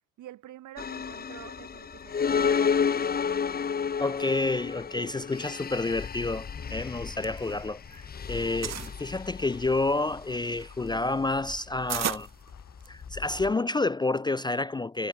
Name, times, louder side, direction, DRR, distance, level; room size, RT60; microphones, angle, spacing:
voice 1, 0.2-2.9, right 13 dB, 80° right, 4.0 m, -47 dB
sound 1, 0.8-13.5, left 6 dB, 30° left, 0.8 m, -32 dB
sound 2, 2.0-14.0, left 11 dB, 70° left, 3.9 m, -61 dB
voice 2, 4.0-8.0 8.3-12.3 12.9-15.1, left 2 dB, 15° left, 0.4 m, -29 dB
sound 3, 6.9-8.1 8.3-9.0 9.6-13.2, right 11 dB, 60° right, 1.4 m, -36 dB
cardioid pair, 90°, 30 cm